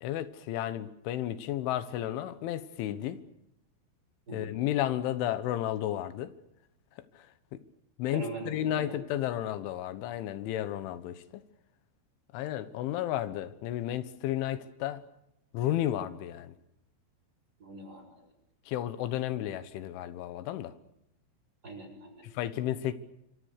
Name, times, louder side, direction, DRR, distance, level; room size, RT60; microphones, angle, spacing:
voice 1, 0.0-3.2 4.3-6.3 7.2-7.3 8.0-11.4 12.3-15.0 15.5-16.5 18.7-20.7 22.3-22.9, left 12 dB, 85° left, 3.7 m, -32 dB
voice 2, 8.1-9.0 17.6-18.0 21.6-22.2, right 2 dB, 20° right, 6.6 m, -41 dB
26.5 x 25.5 x 6.6 m
omnidirectional pair, 5.4 m